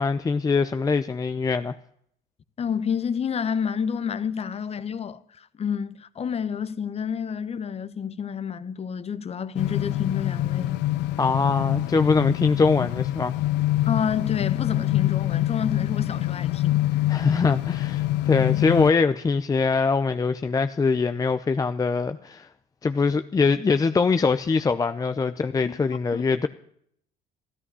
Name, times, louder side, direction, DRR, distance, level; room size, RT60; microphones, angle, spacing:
voice 1, 0.0-1.8 11.2-13.3 17.1-22.5 22.8-26.5, left 4 dB, 20° left, 0.6 m, -23 dB
voice 2, 2.6-10.8 13.9-16.9 18.5-18.6 25.7-25.8 26.1-26.5, left 7 dB, 35° left, 1.0 m, -29 dB
sound 1, 9.6-18.9, left 15 dB, 90° left, 0.6 m, -25 dB
14.0 x 12.5 x 6.9 m
cardioid pair, 110°, 17 cm